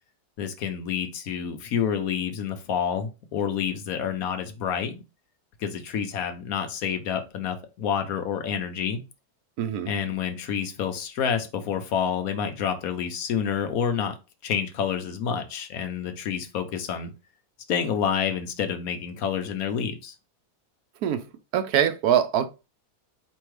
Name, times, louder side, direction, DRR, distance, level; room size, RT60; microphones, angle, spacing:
voice 1, 0.4-5.0 5.6-9.0 9.9-14.1 14.4-17.1 17.7-20.1, left 7 dB, 70° left, 1.1 m, -28 dB
voice 2, 9.6-9.9 21.0-21.3 21.5-22.5, right 9 dB, 75° right, 1.1 m, -23 dB
4.5 x 3.3 x 3.2 m
omnidirectional pair, 1.7 m